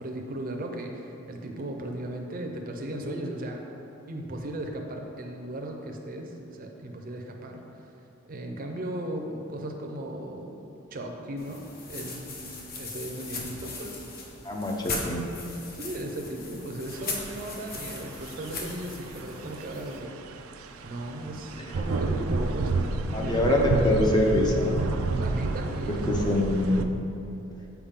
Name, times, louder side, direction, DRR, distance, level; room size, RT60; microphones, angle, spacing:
voice 1, 0.0-3.6 4.1-7.9 8.3-10.6 10.9-12.4 12.8-14.0 15.7-20.2 20.8-23.7 25.2-26.6, right 1 dB, 45° right, 2 dB, 0.6 m, -36 dB
sound 1, 11.4-20.0, left 3 dB, 45° left, 0.8 m, -38 dB
voice 2, 14.4-15.3 21.6-21.7 23.1-24.8 26.3-26.8, left 1 dB, 20° left, 0 dB, 0.6 m, -24 dB
sound 2, 16.9-26.9, right 3 dB, 80° right, 0.4 m, -31 dB
7.1 x 4.5 x 3.6 m, 2.8 s
head